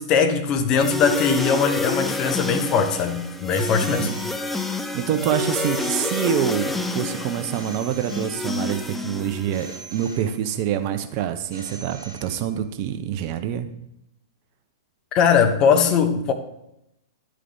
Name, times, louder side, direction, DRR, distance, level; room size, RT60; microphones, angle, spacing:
voice 1, 0.0-4.1 15.1-16.3, left 6 dB, 35° left, 0.9 m, -20 dB
sound 1, 0.7-9.9, left 3 dB, 5° left, 0.6 m, -29 dB
Telephone, 3.5-4.8 5.5-6.8 7.5-8.8 9.5-10.8 11.5-12.8, right 4 dB, 70° right, 1.5 m, -43 dB
voice 2, 4.9-13.7, right 9 dB, 40° right, 0.8 m, -26 dB
11.0 x 5.0 x 3.4 m
figure-of-eight pair, 105°, 2 cm